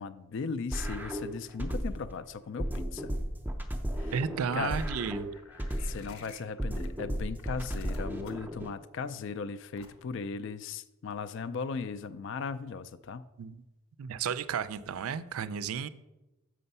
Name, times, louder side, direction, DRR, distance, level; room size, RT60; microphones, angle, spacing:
voice 1, 0.0-3.1 4.0-4.1 4.5-4.8 5.8-13.2, left 5 dB, 55° left, 14 dB, 0.4 m, -37 dB
sound 1, 0.7-2.1 2.6-6.1 6.6-8.7, equal, 10° right, 0.5 m, -34 dB
voice 2, 4.1-5.3 13.4-13.6 14.0-15.9, right 7 dB, 75° right, 16 dB, 0.4 m, -33 dB
sound 2, 5.3-6.9 7.4-8.5 9.8-10.2, left 4 dB, 80° left, 1.0 m, -52 dB
6.8 x 6.2 x 5.4 m, 1.0 s
head